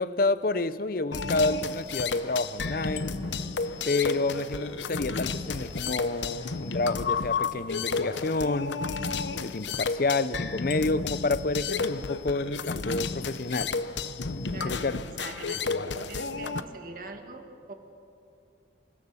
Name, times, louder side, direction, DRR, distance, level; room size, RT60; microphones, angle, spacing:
voice 1, 0.0-3.2 3.9-8.8 9.4-13.7 14.5-15.0, left 2 dB, 50° left, 15 dB, 0.6 m, -29 dB
sound 1, 1.1-16.6, left 4 dB, 80° left, 0.9 m, -32 dB
sound 2, 1.9-8.4, right 2 dB, 30° right, 1.6 m, -53 dB
voice 2, 14.5-17.7, right 3 dB, 50° right, 4 dB, 2.1 m, -43 dB
28.0 x 17.0 x 7.0 m, 2.5 s
head